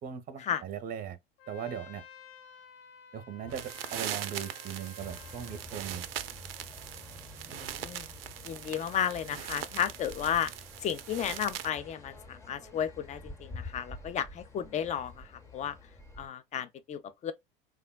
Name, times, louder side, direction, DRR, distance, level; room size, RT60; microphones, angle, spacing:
voice 1, 0.0-1.2 1.5-2.0 3.1-6.1, right 8 dB, 30° right, 0.6 m, -39 dB
Trumpet, 1.4-5.7, left 8 dB, 70° left, 0.7 m, -52 dB
sound 1, 3.4-11.7, right 11 dB, 75° right, 0.5 m, -41 dB
sound 2, 5.0-16.3, left 2 dB, 10° left, 0.9 m, -49 dB
voice 2, 7.5-8.1 8.4-10.5 10.8-15.8 16.2-17.3, left 9 dB, 25° left, 0.4 m, -33 dB
3.4 x 2.1 x 2.3 m
hypercardioid pair, 80°, 30 cm